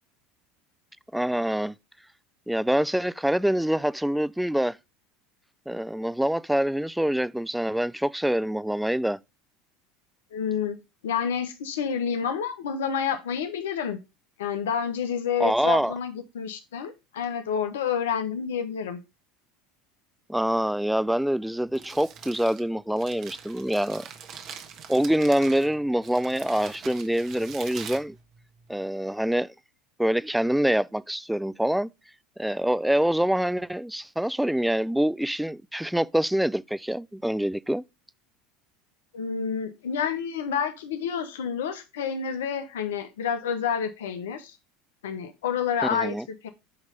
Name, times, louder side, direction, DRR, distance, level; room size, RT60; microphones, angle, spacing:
voice 1, 1.1-1.7 2.5-4.8 5.7-9.2 15.4-15.9 20.3-24.1 24.9-28.2 28.7-29.5 30.0-31.9 32.4-37.8 45.9-46.2, right 1 dB, 5° right, 0.3 m, -25 dB
voice 2, 10.3-10.8 11.0-14.0 14.4-19.0 39.1-44.6 45.0-46.5, left 7 dB, 85° left, 0.9 m, -29 dB
Crumpling crinkling, 21.5-28.8, right 7 dB, 50° right, 1.4 m, -44 dB
9.6 x 3.2 x 5.1 m
hypercardioid pair, 85°, 0 cm